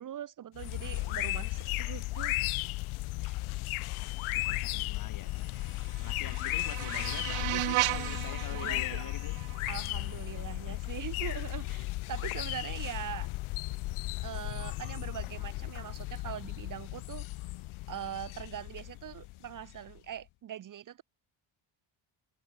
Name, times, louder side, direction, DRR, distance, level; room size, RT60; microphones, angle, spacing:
voice 1, 0.0-2.4 3.2-3.4 8.5-9.0 9.7-13.3 14.2-17.3 17.9-21.0, right 10 dB, 40° right, 0.9 m, -42 dB
sound 1, 0.6-20.0, left 20 dB, 75° left, 0.8 m, -35 dB
voice 2, 4.3-5.5 6.0-9.3 10.7-10.8, left 9 dB, 40° left, 2.8 m, -45 dB
sound 2, 5.5-10.5, right 20 dB, 85° right, 0.9 m, -36 dB
cardioid pair, 165°, 49 cm